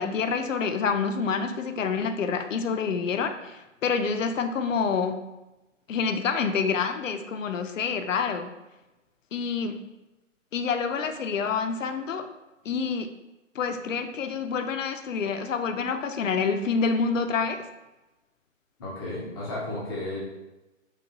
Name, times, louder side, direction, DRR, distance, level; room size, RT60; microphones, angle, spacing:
voice 1, 0.0-5.2 5.9-8.5 9.3-9.7 10.5-12.3 12.7-13.1 13.6-17.6, left 5 dB, 75° left, 8 dB, 0.5 m, -27 dB
voice 2, 18.8-20.2, left 1 dB, 20° left, -5 dB, 0.5 m, -33 dB
4.7 x 2.3 x 2.7 m, 1.0 s
figure-of-eight pair, 135°, 39 cm